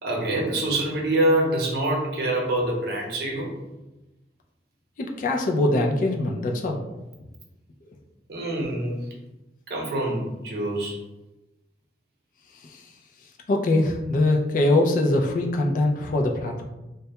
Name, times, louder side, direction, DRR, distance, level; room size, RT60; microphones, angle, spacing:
voice 1, 0.0-3.5 8.3-9.1 9.7-11.0, right 1 dB, 60° right, -1 dB, 0.6 m, -25 dB
voice 2, 5.0-6.9 12.6-12.8 13.5-16.6, left 2 dB, 50° left, 2 dB, 0.3 m, -23 dB
2.2 x 2.1 x 2.8 m, 0.99 s
head